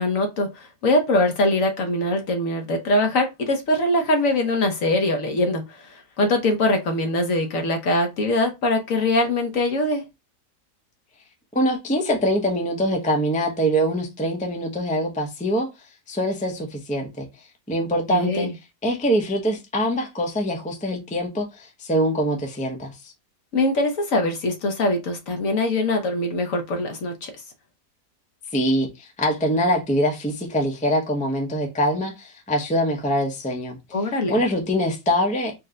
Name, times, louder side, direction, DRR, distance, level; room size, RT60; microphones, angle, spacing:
voice 1, 0.0-10.0 18.1-18.5 23.5-27.3 33.9-34.3, left 1 dB, 60° left, 1.2 m, -22 dB
voice 2, 11.5-15.7 16.1-17.3 17.7-18.5 18.8-23.1 28.5-33.8 34.3-35.5, equal, 10° left, 0.4 m, -24 dB
4.3 x 2.2 x 3.6 m
omnidirectional pair, 1.8 m